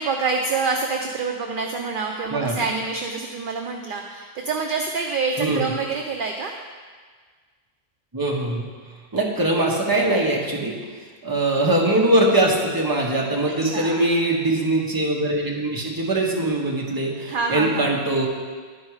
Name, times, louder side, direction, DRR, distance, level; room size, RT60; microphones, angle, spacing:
voice 1, 0.0-6.5 13.6-14.1 17.3-18.0, right 4 dB, 55° right, 2 dB, 0.6 m, -26 dB
voice 2, 2.3-2.6 5.4-5.8 8.1-8.7 9.1-10.7 11.2-18.3, right 1 dB, 20° right, -2 dB, 1.1 m, -22 dB
11.0 x 4.5 x 4.8 m, 1.5 s
omnidirectional pair, 1.3 m